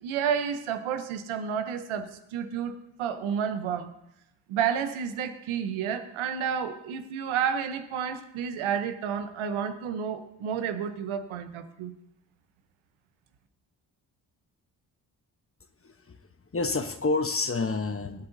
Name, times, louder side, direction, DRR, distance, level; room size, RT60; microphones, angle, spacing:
voice 1, 0.0-3.9 4.5-11.9, right 7 dB, 85° right, 9 dB, 1.0 m, -30 dB
voice 2, 15.8-16.2 16.5-18.3, left 3 dB, 30° left, 9 dB, 1.0 m, -28 dB
22.0 x 8.1 x 2.7 m, 0.79 s
supercardioid pair, 45°, 48 cm